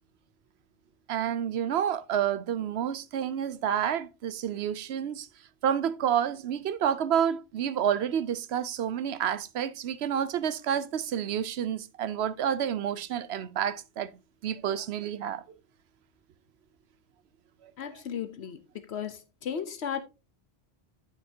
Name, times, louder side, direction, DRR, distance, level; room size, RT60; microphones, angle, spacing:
voice 1, 1.1-5.3 5.6-14.1 14.4-15.4 17.6-17.7, right 9 dB, 75° right, 0.9 m, -29 dB
voice 2, 17.8-20.0, left 8 dB, 75° left, 1.0 m, -35 dB
9.2 x 7.9 x 2.7 m
omnidirectional pair, 1.1 m